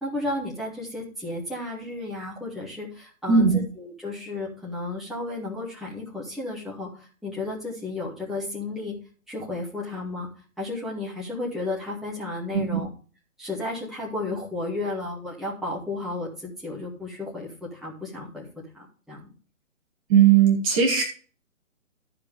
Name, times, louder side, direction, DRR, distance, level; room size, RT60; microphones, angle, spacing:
voice 1, 0.0-8.9 9.3-10.3 10.6-12.9 13.4-18.5 18.7-19.3, left 2 dB, ahead, -6 dB, 2.1 m, -33 dB
voice 2, 3.3-3.6 12.5-12.8 20.1-21.0, right 7 dB, 25° right, 1 dB, 1.9 m, -18 dB
13.5 x 5.0 x 5.0 m, 0.40 s
figure-of-eight pair, 135°, 40 cm